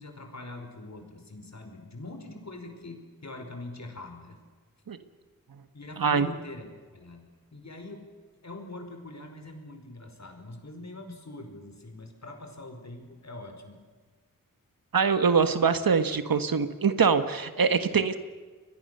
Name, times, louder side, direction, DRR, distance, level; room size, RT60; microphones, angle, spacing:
voice 1, 0.0-4.4 5.7-6.7 6.9-8.0 8.4-13.8, left 2 dB, 50° left, 5 dB, 5.1 m, -43 dB
voice 2, 6.0-6.3 14.9-18.2, right 5 dB, 70° right, 10 dB, 1.6 m, -24 dB
30.0 x 22.0 x 6.9 m, 1.5 s
wide cardioid pair, 65°, 35 cm